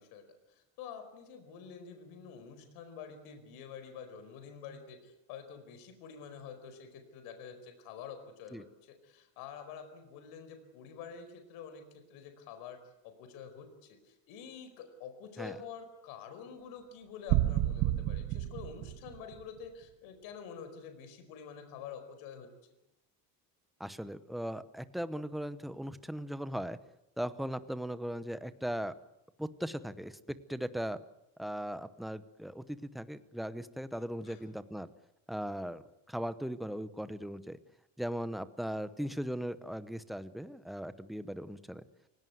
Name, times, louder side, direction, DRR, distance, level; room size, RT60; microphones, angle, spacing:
voice 1, 0.0-22.5 34.2-34.4, left 7 dB, 70° left, 8 dB, 4.9 m, -48 dB
sound 1, 17.3-19.4, right 14 dB, 55° right, 1.3 m, -30 dB
voice 2, 23.8-26.8 27.2-28.9 29.4-31.0 31.4-34.9 35.3-35.8 36.1-37.6 38.0-41.8, equal, ahead, 12 dB, 0.8 m, -38 dB
28.5 x 17.5 x 9.4 m, 0.89 s
cardioid pair, 170°, 38 cm